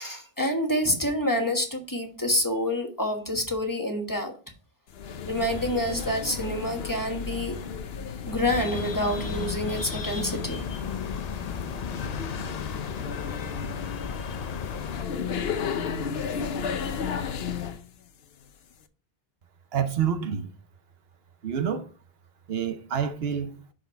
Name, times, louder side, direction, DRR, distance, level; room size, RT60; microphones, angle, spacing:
voice 1, 0.0-4.3 5.3-7.6 8.3-10.8, left 1 dB, 20° left, 1.3 m, -27 dB
sound 1, 4.9-17.8, left 6 dB, 75° left, 1.0 m, -33 dB
sound 2, 8.5-15.0, left 6 dB, 50° left, 0.6 m, -36 dB
voice 2, 19.7-20.5 21.4-21.9 22.5-23.6, right 8 dB, 80° right, 1.0 m, -28 dB
6.3 x 5.7 x 4.5 m
omnidirectional pair, 1.0 m